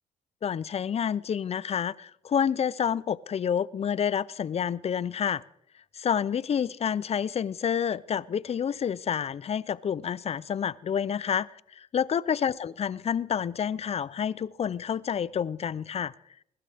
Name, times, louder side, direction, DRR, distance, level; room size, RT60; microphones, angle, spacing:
voice 1, 0.4-5.4 5.9-16.1, left 8 dB, 40° left, 0.6 m, -29 dB
21.5 x 12.5 x 3.5 m
supercardioid pair, 70°, 16 cm